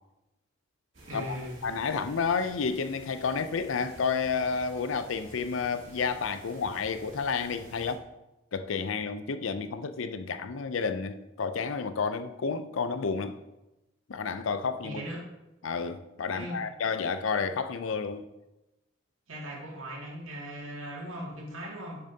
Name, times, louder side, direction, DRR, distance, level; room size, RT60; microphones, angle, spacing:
sound 1, 0.9-7.9, right 1 dB, 65° right, 2.6 m, -51 dB
voice 1, 1.1-1.6 14.8-15.2 16.3-16.6 19.3-22.0, equal, 90° right, 2.3 m, -38 dB
voice 2, 1.6-8.1 8.5-13.4 14.1-15.0 15.6-18.3, left 5 dB, 80° left, 0.5 m, -31 dB
10.0 x 6.9 x 2.8 m
head